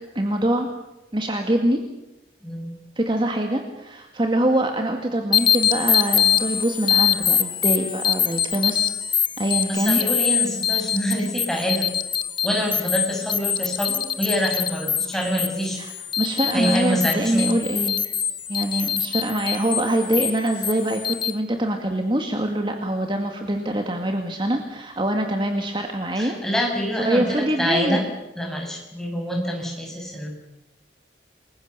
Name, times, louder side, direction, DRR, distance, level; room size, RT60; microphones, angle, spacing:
voice 1, 0.1-0.7 1.1-1.8 3.0-8.9 9.4-10.0 16.2-18.0 18.5-26.4 27.1-28.0, right 1 dB, 30° right, 4 dB, 2.1 m, -24 dB
voice 2, 2.4-2.8 9.7-11.9 12.4-15.8 16.5-17.5 26.1-28.1 28.3-30.3, equal, 5° left, 0 dB, 6.3 m, -26 dB
sound 1, 5.3-21.3, left 9 dB, 25° left, 1.1 m, -24 dB
29.0 x 22.0 x 6.9 m, 0.92 s
head